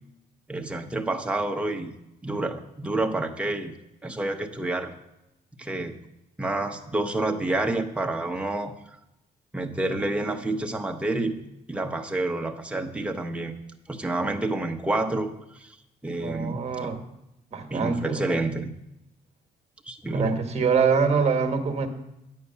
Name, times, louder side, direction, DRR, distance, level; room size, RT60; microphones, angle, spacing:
voice 1, 0.5-1.9 2.2-3.7 4.0-4.9 5.6-5.9 6.4-8.7 9.5-11.4 11.7-13.5 13.9-15.3 15.6-15.8 16.0-16.9 17.7-18.7 19.9-20.5, right 2 dB, 5° right, 4 dB, 0.8 m, -28 dB
voice 2, 16.2-17.0 17.5-18.2 20.1-21.9, right 5 dB, 40° right, 6 dB, 1.3 m, -24 dB
9.2 x 8.5 x 5.6 m, 0.88 s
cardioid pair, 120°, 16 cm